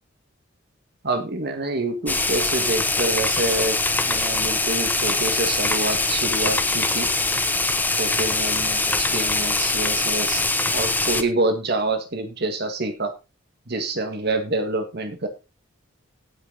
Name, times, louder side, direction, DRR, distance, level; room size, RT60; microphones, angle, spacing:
voice 1, 1.0-3.8 4.1-7.1 8.0-10.4 10.7-13.1 13.7-15.3, right 2 dB, 55° right, 6 dB, 1.8 m, -27 dB
sound 1, 2.1-11.2, left 2 dB, 10° left, 0.9 m, -23 dB
17.0 x 6.2 x 3.9 m, 0.27 s
head